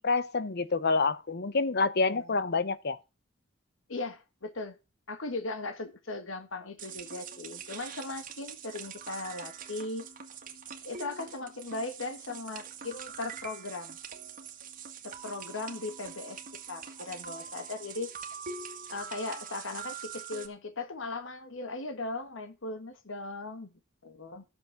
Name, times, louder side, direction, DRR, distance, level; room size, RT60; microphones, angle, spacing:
voice 1, 0.0-3.0, left 4 dB, 55° left, 0.9 m, -27 dB
voice 2, 1.9-2.3 3.9-4.8 5.1-10.0 10.8-14.0 15.0-16.4 16.7-18.1 18.9-23.7 24.0-24.4, left 3 dB, 70° left, 1.5 m, -38 dB
sound 1, 6.8-20.5, right 6 dB, 40° right, 1.7 m, -44 dB
13.0 x 7.1 x 5.9 m
head